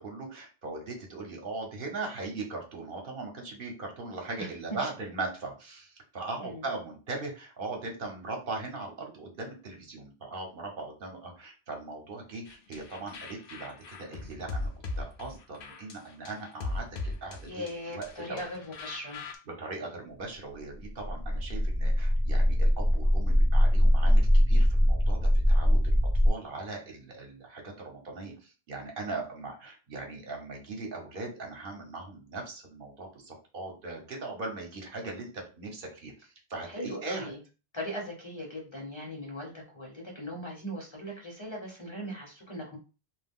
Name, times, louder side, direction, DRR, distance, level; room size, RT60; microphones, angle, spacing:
voice 1, 0.0-14.7 15.0-17.7 17.9-18.4 19.5-26.0 26.3-37.3, right 3 dB, 60° right, 1 dB, 0.9 m, -39 dB
sound 1, 12.5-19.4, left 2 dB, 65° left, 0.8 m, -39 dB
voice 2, 17.5-19.3 36.6-37.4 37.7-42.8, equal, 30° left, -1 dB, 0.7 m, -39 dB
sound 2, 20.8-26.3, equal, 25° right, 0.4 m, -22 dB
2.3 x 2.3 x 3.5 m, 0.33 s
omnidirectional pair, 1.0 m